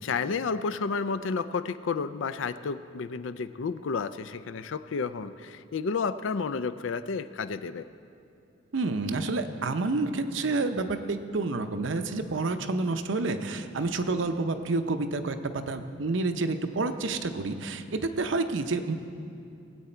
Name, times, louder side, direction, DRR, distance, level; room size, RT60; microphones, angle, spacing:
voice 1, 0.0-7.8, left 5 dB, 75° left, 13 dB, 0.4 m, -31 dB
voice 2, 8.7-18.9, right 3 dB, 70° right, 8 dB, 0.7 m, -29 dB
19.0 x 8.3 x 4.4 m, 2.7 s
head